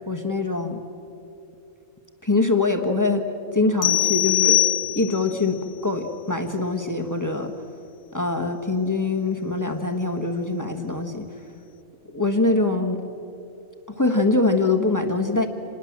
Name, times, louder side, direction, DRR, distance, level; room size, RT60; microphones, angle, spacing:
voice 1, 0.1-0.8 2.2-3.2 3.5-4.6 4.9-7.5 8.1-11.2 12.1-13.0 13.9-15.5, left 3 dB, 15° left, 5 dB, 1.3 m, -23 dB
sound 1, 3.8-5.4, left 14 dB, 70° left, 1.3 m, -21 dB
27.0 x 20.5 x 7.4 m, 2.8 s
omnidirectional pair, 1.5 m